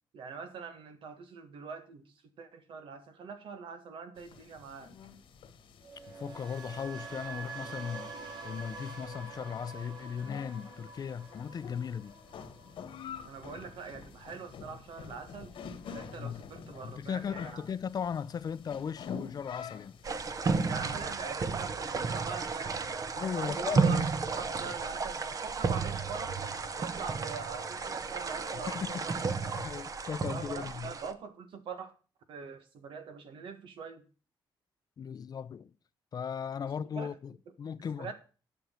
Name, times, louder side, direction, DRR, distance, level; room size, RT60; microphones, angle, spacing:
voice 1, 0.1-4.9 13.2-15.6 15.8-17.6 20.6-26.4 26.7-29.1 29.4-29.6 30.3-31.9 32.3-34.0 36.8-37.1 38.0-38.1, right 5 dB, 90° right, 1.7 m, -43 dB
sound 1, 4.2-21.1, left 6 dB, 85° left, 1.6 m, -48 dB
sound 2, 5.8-13.9 14.2-14.6, right 4 dB, 60° right, 3.0 m, -46 dB
voice 2, 6.1-8.1 8.4-12.1 16.2-16.4 16.8-20.0 23.2-24.0 28.5-29.2 29.6-30.9 35.0-35.7 36.1-38.1, left 7 dB, 50° left, 0.6 m, -37 dB
sound 3, 20.0-31.1, right 4 dB, 45° right, 0.9 m, -33 dB
10.5 x 6.3 x 5.6 m
cardioid pair, 120°, 9 cm